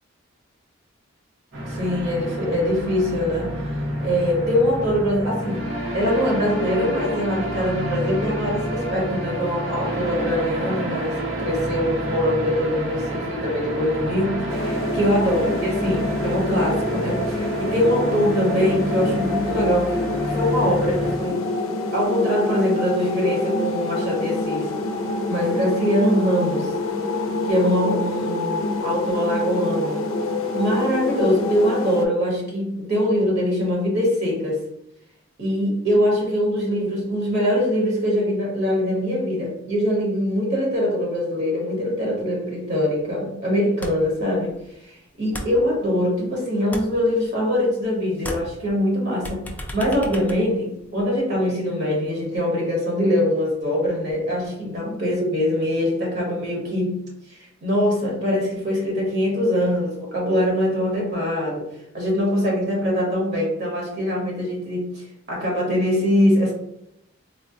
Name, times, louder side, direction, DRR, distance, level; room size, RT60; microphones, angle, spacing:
sound 1, 1.5-21.2, equal, 80° right, 0.9 m, -29 dB
voice 1, 1.6-3.5 4.0-5.6 5.9-21.4 21.9-24.7 25.3-26.7 27.5-30.0 30.5-34.6 35.4-44.6 44.8-49.4 49.7-57.0 57.3-61.7 61.9-66.5, equal, 55° right, -2 dB, 0.9 m, -23 dB
sound 2, 14.5-32.1, left 2 dB, 80° left, 0.4 m, -26 dB
sound 3, 43.8-44.2 44.5-46.3 46.5-47.9 48.1-51.2, left 1 dB, 10° left, 0.3 m, -36 dB
3.6 x 2.1 x 2.6 m, 0.80 s
head